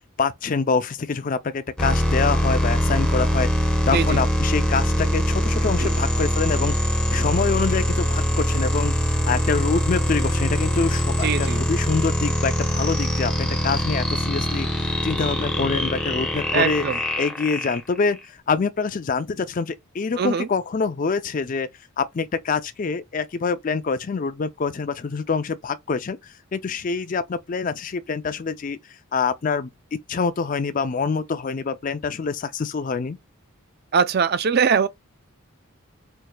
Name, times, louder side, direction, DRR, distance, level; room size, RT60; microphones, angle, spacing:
voice 1, 0.2-14.7 15.0-16.8 17.2-21.7 22.0-26.2 26.5-28.8 29.1-33.2, left 5 dB, 35° left, 0.4 m, -25 dB
sound 1, 1.8-18.2, equal, 5° left, 0.8 m, -23 dB
voice 2, 3.8-4.2 5.8-5.9 11.2-11.6 16.5-17.0 20.2-20.5 33.9-34.9, right 6 dB, 45° right, 0.4 m, -22 dB
4.5 x 2.8 x 2.2 m
head